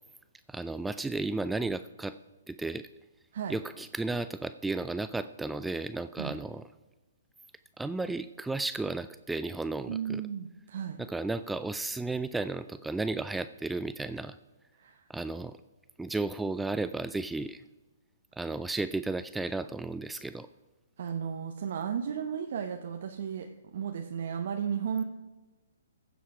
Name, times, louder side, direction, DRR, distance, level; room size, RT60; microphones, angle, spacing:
voice 1, 0.5-2.2 2.5-2.9 3.5-6.6 7.8-10.2 11.1-14.4 15.1-15.6 16.0-17.6 18.4-20.5, right 3 dB, 5° right, 12 dB, 0.3 m, -33 dB
voice 2, 9.9-11.0 14.8-15.1 21.0-25.0, right 7 dB, 55° right, 5 dB, 0.9 m, -34 dB
15.5 x 7.3 x 4.9 m, 1.2 s
figure-of-eight pair, 130°, 0 cm